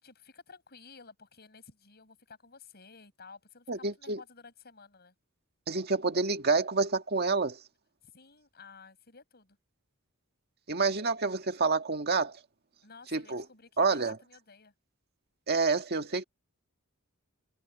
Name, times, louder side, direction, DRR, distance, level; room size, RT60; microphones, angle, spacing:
voice 1, 0.0-5.1 8.0-9.6 12.8-14.7, left 5 dB, 50° left, 6.9 m, -53 dB
voice 2, 3.7-4.2 5.7-7.6 10.7-12.4 13.1-13.4 13.8-14.2 15.5-16.2, right 4 dB, 50° right, 1.8 m, -28 dB
head